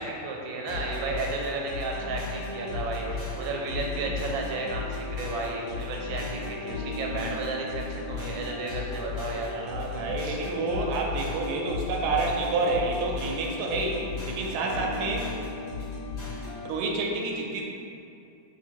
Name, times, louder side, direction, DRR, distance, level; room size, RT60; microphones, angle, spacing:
voice 1, 0.0-9.6 10.2-10.4 14.6-14.9, right 3 dB, 90° right, 0 dB, 1.4 m, -33 dB
sound 1, 0.7-16.7, left 4 dB, 60° left, 1.6 m, -35 dB
voice 2, 9.5-15.3 16.6-17.6, right 3 dB, 70° right, 0 dB, 1.0 m, -29 dB
3.6 x 2.4 x 4.4 m, 2.5 s
omnidirectional pair, 2.1 m